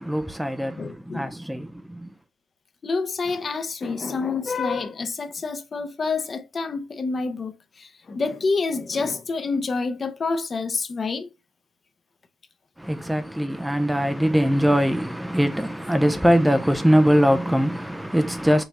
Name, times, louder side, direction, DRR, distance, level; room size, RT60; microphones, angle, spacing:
voice 1, 0.0-2.1 12.8-18.6, equal, 5° right, 0.4 m, -22 dB
voice 2, 0.8-1.3 2.8-11.3, left 4 dB, 40° left, 0.7 m, -28 dB
5.4 x 2.9 x 2.4 m
cardioid pair, 90°, 0 cm